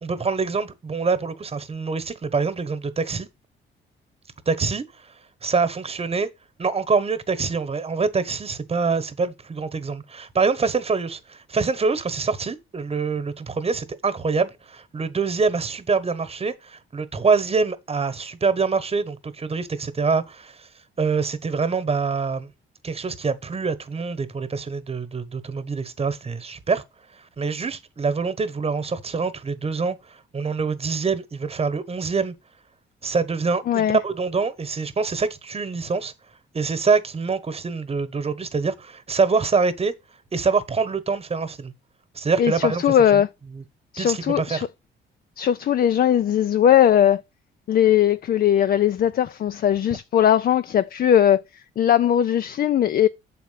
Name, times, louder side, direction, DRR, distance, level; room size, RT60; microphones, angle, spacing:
voice 1, 0.0-3.3 4.5-5.2 5.4-6.3 6.6-20.7 21.0-22.5 22.8-26.8 27.1-32.3 33.0-36.1 36.5-39.9 40.3-41.7 42.1-42.8 43.1-43.2 43.5-43.6 44.0-44.6, right 4 dB, 30° right, 1.2 m, -25 dB
voice 2, 33.7-34.0 42.4-43.3 43.9-44.7 45.4-47.2 47.7-51.4 51.8-53.1, left 10 dB, 50° left, 0.5 m, -19 dB
7.1 x 4.3 x 5.7 m
cardioid pair, 90°, 20 cm